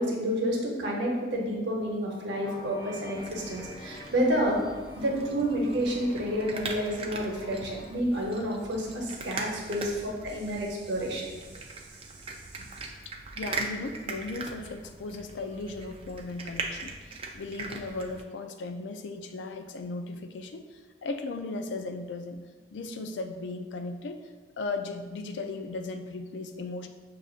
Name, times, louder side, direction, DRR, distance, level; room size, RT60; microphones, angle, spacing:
voice 1, 0.0-4.6 4.9-11.3 12.6-12.7, equal, 80° right, -1 dB, 0.8 m, -29 dB
sound 1, 2.4-7.9, equal, 20° left, 0.5 m, -46 dB
sound 2, 3.1-18.2, right 3 dB, 30° right, 0.3 m, -41 dB
voice 2, 13.1-22.4 22.7-24.2 24.6-26.9, left 3 dB, 85° left, 7 dB, 0.4 m, -37 dB
6.3 x 2.4 x 2.4 m, 1.4 s
head